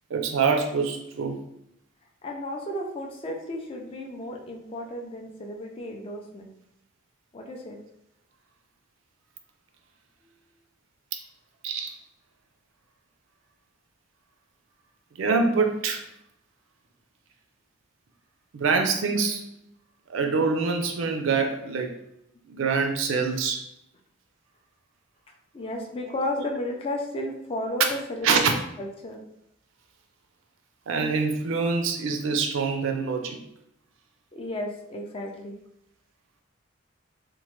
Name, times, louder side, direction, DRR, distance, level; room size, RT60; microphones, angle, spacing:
voice 1, 0.1-1.4 11.1-11.2 11.6-11.9 15.1-16.1 18.5-19.5 20.1-22.0 22.5-23.7 26.4-26.5 28.2-28.5 30.9-33.4, right 4 dB, 70° right, 5 dB, 0.4 m, -25 dB
voice 2, 2.2-6.5 7.3-7.8 25.5-29.2 34.3-35.6, left 1 dB, 25° left, 1 dB, 0.4 m, -33 dB
3.0 x 2.1 x 3.0 m, 0.75 s
head